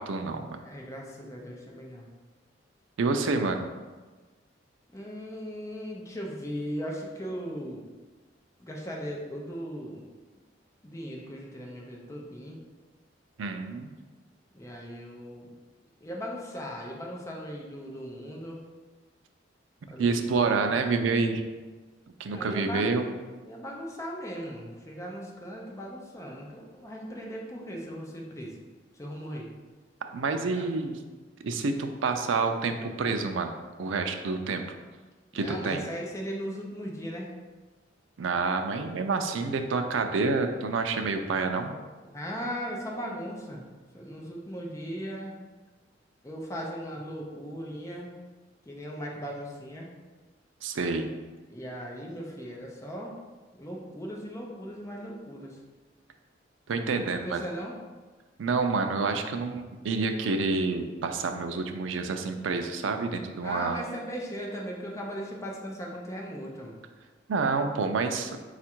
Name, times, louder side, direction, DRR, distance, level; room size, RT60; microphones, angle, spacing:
voice 1, 0.0-0.6 3.0-3.7 13.4-13.9 20.0-21.4 22.2-23.1 30.1-31.0 31.4-34.6 35.3-35.8 38.2-41.7 50.6-51.1 56.7-57.4 58.4-63.8 67.3-68.4, right 4 dB, 85° right, 6 dB, 0.4 m, -28 dB
voice 2, 0.6-2.1 4.9-7.8 8.6-10.0 10.8-12.6 14.5-15.5 16.0-18.6 19.9-20.7 22.3-28.5 29.0-29.5 30.4-30.7 35.3-37.3 42.0-43.6 43.9-45.4 46.2-48.1 48.7-49.9 51.5-53.1 53.6-55.6 57.0-57.7 63.4-66.8, equal, 15° left, -2 dB, 0.6 m, -38 dB
4.3 x 2.4 x 4.4 m, 1.3 s
head